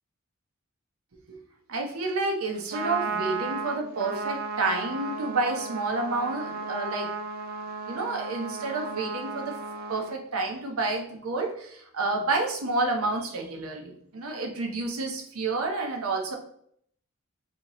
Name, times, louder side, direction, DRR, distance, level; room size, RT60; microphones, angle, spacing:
voice 1, 1.7-7.1 7.9-9.6 9.9-16.3, right 3 dB, 90° right, 2 dB, 0.8 m, -29 dB
Trumpet, 2.5-10.1, right 4 dB, 45° right, 0.3 m, -34 dB
4.3 x 2.8 x 3.0 m, 0.67 s
head